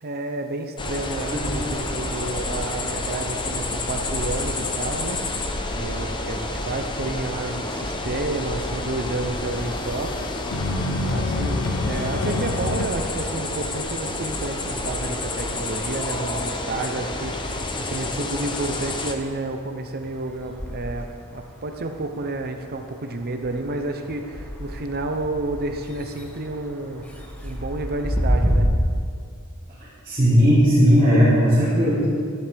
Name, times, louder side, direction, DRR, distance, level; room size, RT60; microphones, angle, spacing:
voice 1, 0.0-5.2 5.7-10.1 11.1-28.7, right 2 dB, 45° right, 5 dB, 0.7 m, -30 dB
sound 1, 0.8-19.1, left 2 dB, 20° left, 0.7 m, -29 dB
sound 2, 8.0-12.8, left 2 dB, 85° left, 0.8 m, -29 dB
sound 3, 19.1-28.7, equal, 5° left, 1.1 m, -31 dB
voice 2, 30.0-32.1, equal, 25° right, -13 dB, 3.1 m, -17 dB
12.5 x 11.0 x 3.5 m, 2.3 s
head